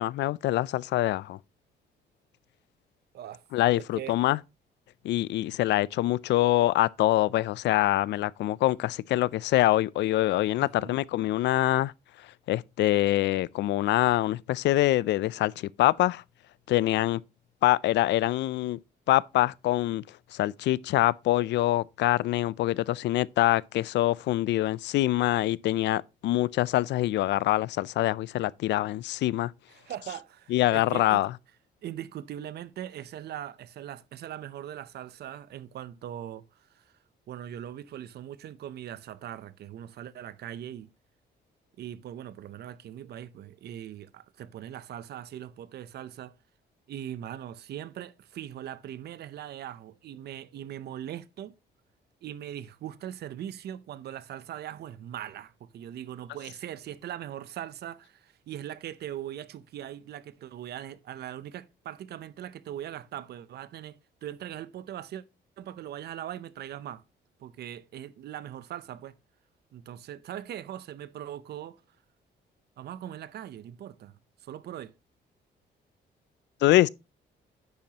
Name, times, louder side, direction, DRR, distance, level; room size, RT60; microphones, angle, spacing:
voice 1, 0.0-1.4 3.5-4.4 5.0-11.9 12.5-16.2 16.7-17.2 17.6-18.8 19.1-20.0 20.3-29.5 30.5-31.3 76.6-76.9, left 15 dB, 75° left, 0.4 m, -25 dB
voice 2, 3.8-4.2 10.6-11.0 29.7-31.2 31.8-36.9 37.3-40.9 41.8-46.3 46.9-51.5 52.2-65.2 65.6-67.0 67.4-69.2 69.7-71.8 72.8-74.2 74.4-74.9, right 11 dB, 65° right, 0.7 m, -40 dB
9.7 x 7.2 x 2.9 m
cardioid pair, 140°, 18 cm